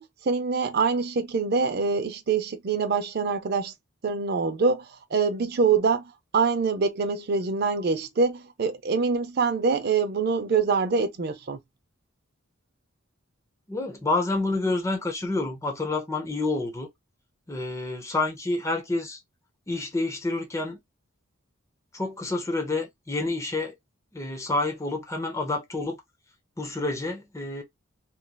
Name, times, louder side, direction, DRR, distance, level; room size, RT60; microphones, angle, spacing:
voice 1, 0.0-3.7 4.0-11.6, right 4 dB, 50° right, 0.5 m, -25 dB
voice 2, 13.7-16.9 17.5-19.2 19.7-20.8 21.9-23.7 24.1-26.0 26.6-27.6, left 2 dB, 15° left, 0.7 m, -28 dB
3.0 x 2.6 x 2.2 m
head